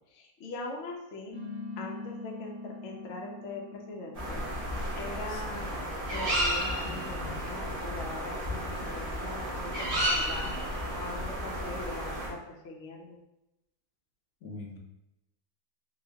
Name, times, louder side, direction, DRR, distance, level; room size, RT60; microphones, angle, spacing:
voice 1, 0.1-1.4 1.8-4.4 5.0-5.8 6.1-13.2, left 2 dB, 60° left, 0 dB, 0.8 m, -42 dB
sound 1, 1.3-6.3, left 3 dB, 20° left, 0.9 m, -43 dB
sound 2, 4.2-12.3, equal, 50° right, 1.2 m, -32 dB
voice 2, 5.3-5.6 14.4-14.8, left 2 dB, 80° left, 0 dB, 1.1 m, -43 dB
3.9 x 2.4 x 2.7 m, 0.92 s
omnidirectional pair, 1.5 m